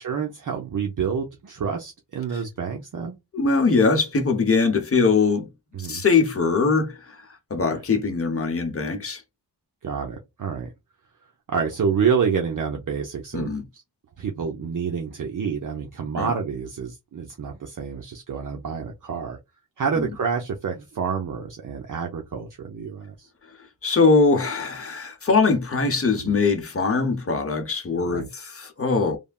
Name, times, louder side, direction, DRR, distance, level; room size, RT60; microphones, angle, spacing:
voice 1, 0.0-3.2 5.7-6.0 9.8-10.7 11.5-13.8 14.2-19.4 19.8-23.3 26.2-26.3 28.1-28.3, right 6 dB, 50° right, 0.7 m, -28 dB
voice 2, 3.3-5.5 5.8-7.2 7.5-9.2 13.3-13.6 16.2-16.3 20.0-20.1 23.8-29.2, left 4 dB, 35° left, 0.9 m, -22 dB
3.3 x 2.1 x 2.4 m
wide cardioid pair, 95°, 41 cm